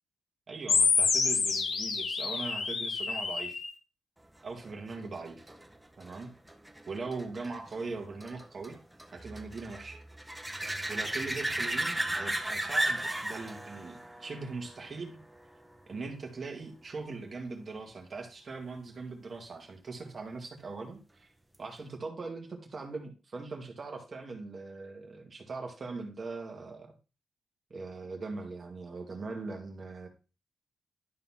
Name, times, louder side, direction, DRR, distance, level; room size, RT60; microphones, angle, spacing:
voice 1, 0.5-3.6 4.4-5.5 6.0-6.3 6.9-8.8 9.1-10.0 10.9-15.2 15.9-21.3 21.6-26.9 27.7-30.1, right 3 dB, 35° right, 3 dB, 1.7 m, -41 dB
alotf shot fx wobble, 0.7-3.7, left 4 dB, 60° left, 1.5 m, -28 dB
sound 1, 4.6-15.9 21.5-21.6, right 1 dB, 5° right, 0.9 m, -36 dB
11.5 x 4.1 x 5.6 m, 0.31 s
wide cardioid pair, 155°, 0 cm